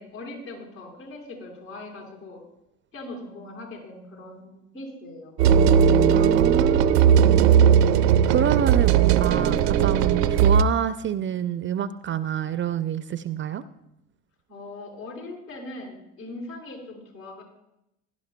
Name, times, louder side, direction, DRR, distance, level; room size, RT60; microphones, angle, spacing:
voice 1, 0.0-2.4 2.9-5.3 14.5-17.4, left 2 dB, 80° left, -3 dB, 4.6 m, -40 dB
sound 1, 5.4-10.6, right 8 dB, 80° right, 0.6 m, -18 dB
voice 2, 6.1-7.5 8.3-13.6, right 9 dB, 25° right, 13 dB, 0.4 m, -27 dB
16.5 x 11.5 x 2.2 m, 0.85 s
hypercardioid pair, 65°, 47 cm